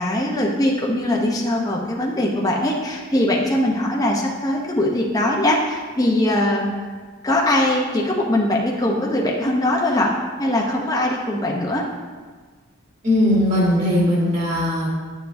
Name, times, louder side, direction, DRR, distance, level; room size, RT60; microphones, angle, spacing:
voice 1, 0.0-6.7 7.2-10.1 10.4-11.8, left 1 dB, 15° left, -2 dB, 0.7 m, -21 dB
voice 2, 13.0-14.9, left 1 dB, 35° right, -6 dB, 2.4 m, -19 dB
10.5 x 6.9 x 2.6 m, 1.5 s
head